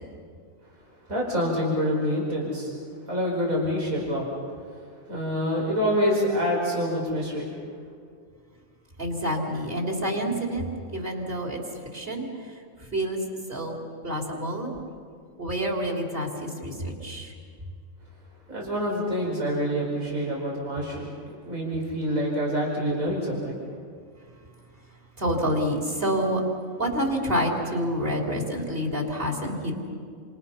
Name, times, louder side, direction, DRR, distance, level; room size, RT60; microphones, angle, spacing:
voice 1, 1.1-2.7 3.1-4.3 5.1-7.4 18.5-21.1 21.5-23.6, equal, 75° right, -3 dB, 5.6 m, -26 dB
voice 2, 9.0-10.6 10.9-11.6 11.9-12.3 12.9-13.2 13.5-14.7 15.4-17.3 25.2-26.4 26.8-29.9, equal, 40° right, 0 dB, 4.0 m, -28 dB
29.0 x 27.5 x 5.8 m, 2.2 s
omnidirectional pair, 1.4 m